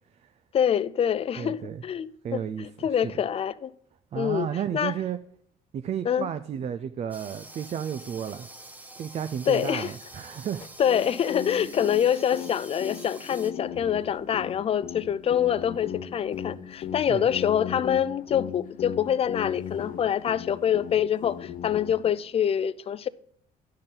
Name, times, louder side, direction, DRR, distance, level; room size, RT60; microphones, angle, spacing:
voice 1, 0.5-3.7 4.2-4.5 4.7-4.9 6.1-6.3 9.5-9.9 10.8-23.1, left 9 dB, 35° left, 0.4 m, -25 dB
voice 2, 1.4-1.8 2.2-3.2 4.1-5.2 5.7-8.5 9.0-10.7 17.0-17.3, right 9 dB, 40° right, 0.5 m, -33 dB
sound 1, 7.1-13.5, right 1 dB, 10° right, 1.0 m, -46 dB
sound 2, 10.8-22.2, left 8 dB, 50° left, 0.8 m, -37 dB
10.5 x 6.6 x 3.8 m
cardioid pair, 110°, 17 cm